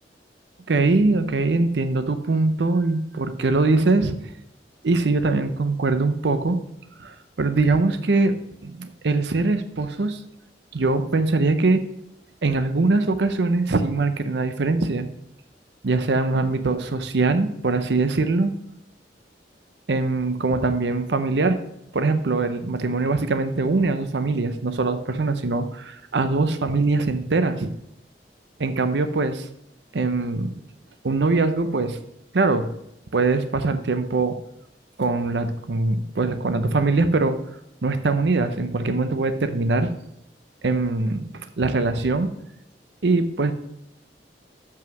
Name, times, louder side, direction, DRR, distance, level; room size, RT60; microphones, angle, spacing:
voice 1, 0.7-4.1 4.8-6.6 7.0-8.4 8.6-10.2 10.7-11.8 12.4-15.1 15.8-18.5 19.9-21.6 21.9-27.7 28.6-29.5 29.9-30.5 31.0-32.0 32.3-32.7 33.1-34.4 35.0-37.4 37.8-39.9 40.6-42.3 43.0-43.5, right 3 dB, 70° right, 10 dB, 0.7 m, -22 dB
7.2 x 5.6 x 6.1 m, 0.82 s
head